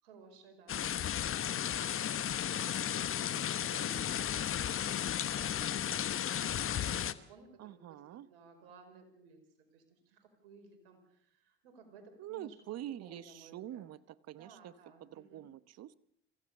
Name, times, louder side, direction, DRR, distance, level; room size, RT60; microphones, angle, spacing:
voice 1, 0.0-12.5 12.8-13.9 14.4-15.5, right 4 dB, 85° right, 5 dB, 4.9 m, -57 dB
sound 1, 0.7-7.1, left 10 dB, 45° left, 1.2 m, -34 dB
voice 2, 7.6-8.3 12.2-14.0 14.3-14.7 15.0-15.9, right 12 dB, 55° right, 17 dB, 1.1 m, -45 dB
26.0 x 15.5 x 6.7 m, 0.70 s
hypercardioid pair, 65°, 30 cm